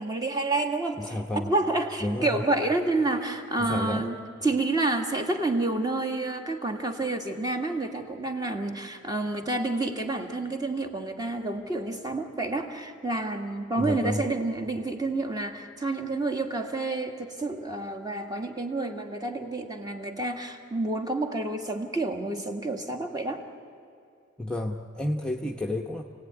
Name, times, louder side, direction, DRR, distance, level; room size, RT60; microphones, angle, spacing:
voice 1, 0.0-4.2 4.4-23.4, right 2 dB, 20° right, 4 dB, 1.9 m, -29 dB
voice 2, 1.0-1.5 2.0-2.4 3.6-4.0 13.8-14.3 24.4-26.0, left 1 dB, 5° left, 0 dB, 1.0 m, -30 dB
28.5 x 18.0 x 9.7 m, 2.5 s
head